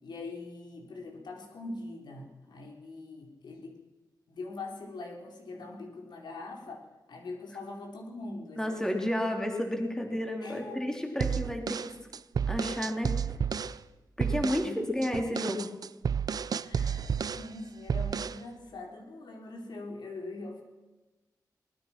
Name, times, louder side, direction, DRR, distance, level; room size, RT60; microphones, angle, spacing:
voice 1, 0.0-3.8 4.3-9.2 10.4-10.9 14.6-14.9 16.6-20.6, left 2 dB, 80° left, 2 dB, 4.4 m, -42 dB
voice 2, 8.6-11.9 12.5-13.1 14.2-15.7, equal, 10° left, 2 dB, 3.3 m, -31 dB
sound 1, 11.2-13.8 14.2-14.7 15.0-17.5 17.9-18.4, right 7 dB, 60° right, 0.6 m, -31 dB
24.5 x 20.0 x 6.0 m, 1.2 s
wide cardioid pair, 140°, 7 cm